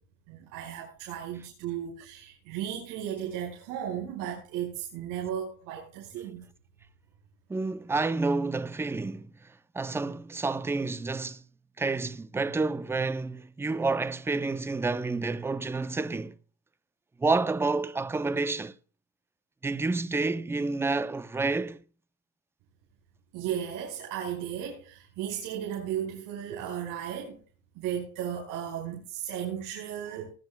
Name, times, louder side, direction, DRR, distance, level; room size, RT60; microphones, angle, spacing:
voice 1, 0.3-6.5 23.3-27.4 27.8-30.3, right 9 dB, 75° right, 5.3 m, -35 dB
voice 2, 7.5-9.3 9.7-11.4 11.8-16.3 17.2-18.7 19.6-21.8, right 3 dB, 10° right, 0.5 m, -29 dB
20.0 x 10.5 x 2.3 m
cardioid pair, 135°, 32 cm